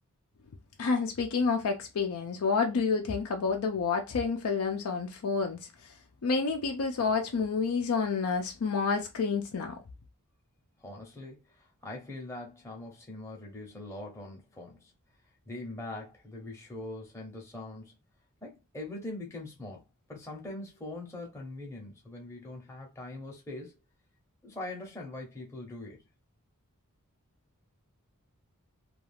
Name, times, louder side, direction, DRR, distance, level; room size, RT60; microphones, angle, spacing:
voice 1, 0.8-5.6 6.2-9.8, left 5 dB, 70° left, 0.4 m, -29 dB
voice 2, 10.8-14.9 15.5-18.0 18.4-19.8 20.1-23.8 24.4-26.0, left 2 dB, 10° left, 0.7 m, -42 dB
2.3 x 2.3 x 3.2 m
head